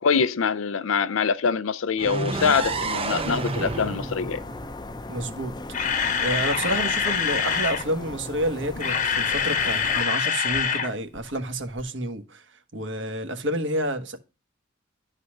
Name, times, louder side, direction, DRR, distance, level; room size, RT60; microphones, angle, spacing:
voice 1, 0.0-4.4, left 6 dB, 90° left, 0.5 m, -24 dB
sound 1, 2.0-5.8, right 3 dB, 30° right, 0.5 m, -31 dB
sound 2, 2.3-10.0, left 2 dB, 20° left, 0.6 m, -38 dB
voice 2, 5.1-5.6 6.2-12.4 12.7-14.2, right 1 dB, 65° right, 1.3 m, -29 dB
Camera, 5.4-7.8 8.6-10.9 11.2-11.3 11.8-11.9, left 7 dB, 40° left, 1.0 m, -25 dB
12.0 x 4.1 x 6.4 m
head